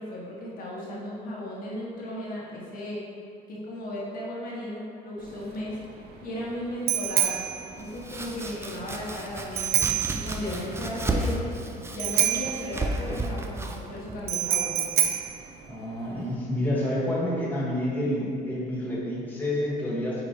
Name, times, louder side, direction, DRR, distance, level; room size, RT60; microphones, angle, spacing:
voice 1, 0.0-3.0 3.5-5.8 6.2-7.4 7.7-11.5 11.9-14.8, left 1 dB, 55° left, -5 dB, 1.4 m, -35 dB
Bicycle bell, 5.2-16.3, right 10 dB, 70° right, 0.6 m, -29 dB
Domestic sounds home sounds, 7.8-15.5, right 2 dB, 15° right, 0.5 m, -34 dB
voice 2, 15.7-20.2, left 1 dB, 10° left, -7 dB, 1.5 m, -28 dB
4.8 x 4.8 x 4.3 m, 2.3 s
cardioid pair, 110°, 17 cm